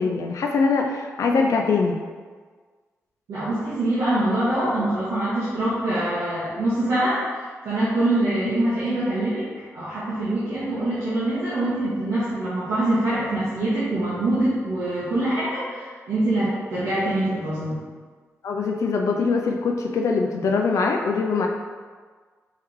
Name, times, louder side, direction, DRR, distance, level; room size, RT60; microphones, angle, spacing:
voice 1, 0.0-2.0 18.4-21.5, left 4 dB, 75° left, 2 dB, 0.4 m, -22 dB
voice 2, 3.3-7.2 7.6-9.5 9.7-17.8, right 1 dB, 90° right, -11 dB, 1.2 m, -24 dB
4.6 x 3.5 x 3.1 m, 1.5 s
cardioid pair, 80°, 5 cm